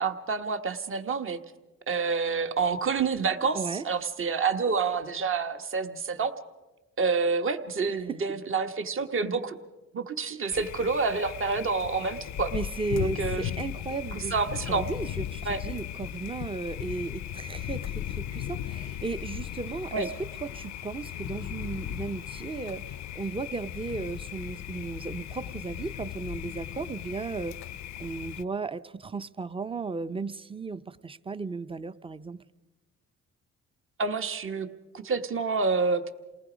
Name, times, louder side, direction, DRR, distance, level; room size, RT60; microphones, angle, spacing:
voice 1, 0.0-1.4 1.9-6.3 7.0-9.6 9.9-12.5 13.0-13.5 14.1-14.9 15.4-15.6 19.9-20.1 34.0-34.7 34.9-36.1, right 4 dB, 45° right, 8 dB, 1.3 m, -28 dB
voice 2, 3.5-3.8 12.5-14.4 14.6-27.6 28.0-32.4, right 4 dB, 20° right, 14 dB, 0.7 m, -35 dB
Thunder, 10.5-28.4, left 11 dB, 65° left, 0.6 m, -37 dB
28.0 x 19.0 x 5.1 m, 1.1 s
cardioid pair, 90°, 30 cm